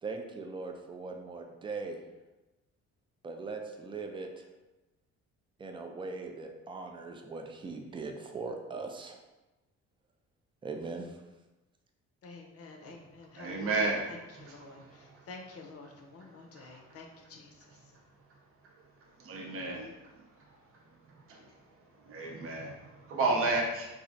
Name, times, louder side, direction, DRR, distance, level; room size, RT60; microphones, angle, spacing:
voice 1, 0.0-2.0 3.2-4.4 5.6-9.2 10.6-11.2, right 4 dB, 15° right, 3 dB, 0.3 m, -40 dB
voice 2, 12.2-17.5, left 3 dB, 50° left, 2 dB, 0.6 m, -49 dB
voice 3, 13.4-14.0 14.3-15.1 16.6-16.8 19.2-19.9 21.3-21.4 22.0-23.9, right 3 dB, 50° right, -1 dB, 0.6 m, -32 dB
3.1 x 2.4 x 2.5 m, 1.1 s
cardioid pair, 90°, 30 cm